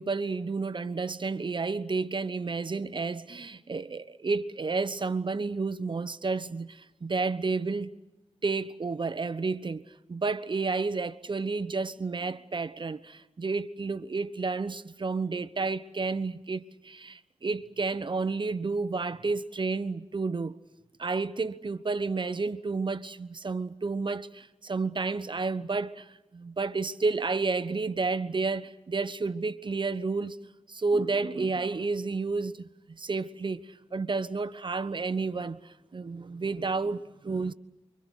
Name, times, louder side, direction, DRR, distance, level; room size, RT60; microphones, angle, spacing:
voice 1, 0.0-7.9 8.4-9.8 10.1-20.6 21.0-30.4 30.7-37.5, right 4 dB, 45° right, 1.3 m, -31 dB
29.0 x 25.0 x 6.6 m
cardioid pair, 65°, 11 cm